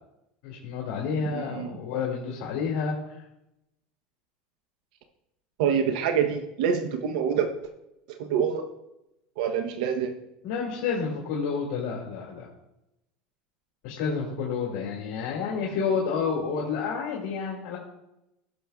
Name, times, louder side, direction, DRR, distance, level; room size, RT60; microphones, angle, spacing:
voice 1, 0.4-3.0 10.4-12.5 13.8-17.8, left 5 dB, 70° left, -3 dB, 2.3 m, -29 dB
voice 2, 1.2-1.7 5.6-7.5 8.1-8.7 9.4-10.2, right 7 dB, 75° right, 6 dB, 0.8 m, -26 dB
16.5 x 6.4 x 2.3 m, 0.88 s
supercardioid pair, 145°, 4 cm